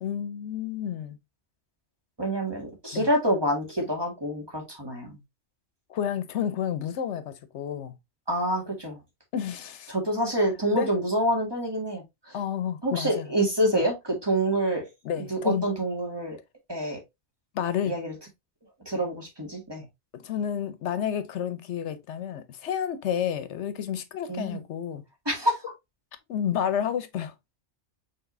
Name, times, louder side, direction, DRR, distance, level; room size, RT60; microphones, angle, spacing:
voice 1, 0.0-1.2 2.9-3.1 5.9-8.0 9.3-9.9 10.7-10.9 12.3-13.3 13.7-13.8 15.0-15.7 17.5-17.9 20.2-25.0 26.3-27.3, left 9 dB, 80° left, 1.0 m, -30 dB
voice 2, 2.2-5.2 8.3-9.0 9.9-12.4 12.8-14.8 15.2-16.4 16.7-17.0 17.9-18.1 18.9-19.8 24.3-24.6 25.3-25.6, right 1 dB, 20° right, 1.9 m, -27 dB
5.9 x 3.5 x 2.6 m
omnidirectional pair, 1.2 m